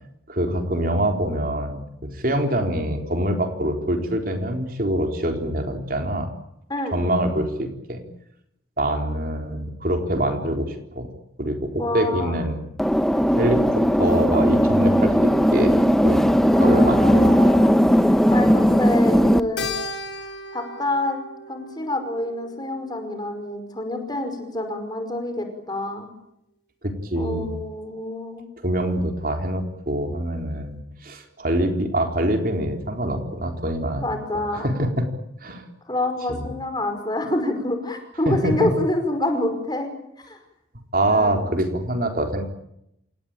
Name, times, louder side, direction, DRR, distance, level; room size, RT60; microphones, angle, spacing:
voice 1, 0.3-6.3 6.9-8.0 8.8-11.1 11.4-12.6 13.4-15.8 16.0-17.5 26.8-27.5 28.6-34.1 34.5-35.1 35.4-35.6 36.3-36.5 38.3-38.7 40.9-42.4, right 1 dB, 50° right, 4 dB, 3.9 m, -25 dB
voice 2, 11.8-12.4 16.5-17.8 18.3-19.7 20.5-21.2 21.5-26.1 27.1-28.4 34.0-34.7 35.9-39.9 40.2-40.4 41.0-41.5, left 1 dB, 20° left, 6 dB, 5.2 m, -27 dB
sound 1, 12.8-19.4, equal, ahead, 0.9 m, -17 dB
Keyboard (musical), 19.6-24.2, left 2 dB, 75° left, 5.2 m, -36 dB
27.5 x 19.0 x 8.9 m, 0.80 s
head